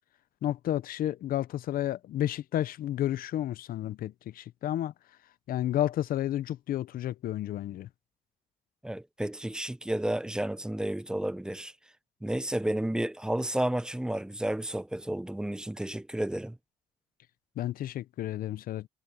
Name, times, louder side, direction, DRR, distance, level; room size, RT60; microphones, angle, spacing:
voice 1, 0.4-4.9 5.5-7.9 17.6-18.9, left 12 dB, 60° left, 0.6 m, -31 dB
voice 2, 8.8-11.7 12.2-16.6, right 1 dB, 5° right, 0.7 m, -31 dB
cardioid pair, 110°, 17 cm